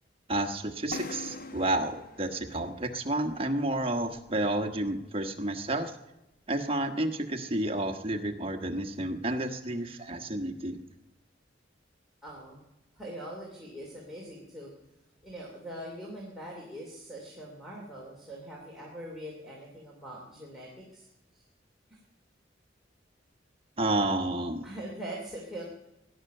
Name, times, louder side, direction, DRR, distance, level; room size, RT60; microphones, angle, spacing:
voice 1, 0.3-5.9 6.5-10.8 23.8-24.7, right 1 dB, 30° right, 5 dB, 1.4 m, -30 dB
sound 1, 0.9-4.5, left 3 dB, 50° left, 1.0 m, -44 dB
voice 2, 12.2-12.6 13.0-14.7 15.2-21.1 21.3-21.4 21.9-22.0 24.6-25.6, right 1 dB, ahead, -5 dB, 2.9 m, -42 dB
17.5 x 11.0 x 6.7 m, 0.95 s
head